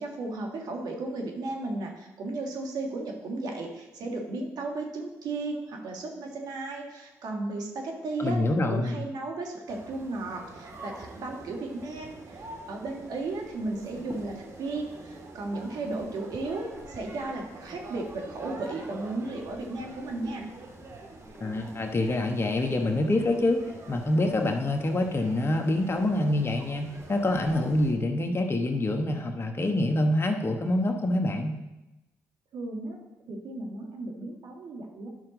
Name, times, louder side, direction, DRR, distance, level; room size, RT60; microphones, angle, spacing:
voice 1, 0.0-8.4 8.7-20.5 32.5-33.0 33.3-35.1, right 2 dB, 65° right, 1 dB, 1.8 m, -35 dB
voice 2, 8.2-9.0 21.4-31.6, left 1 dB, 35° left, 4 dB, 1.3 m, -26 dB
sound 1, 9.7-27.9, right 2 dB, 45° right, 2.0 m, -45 dB
10.5 x 5.8 x 3.9 m, 0.99 s
hypercardioid pair, 50°, 7 cm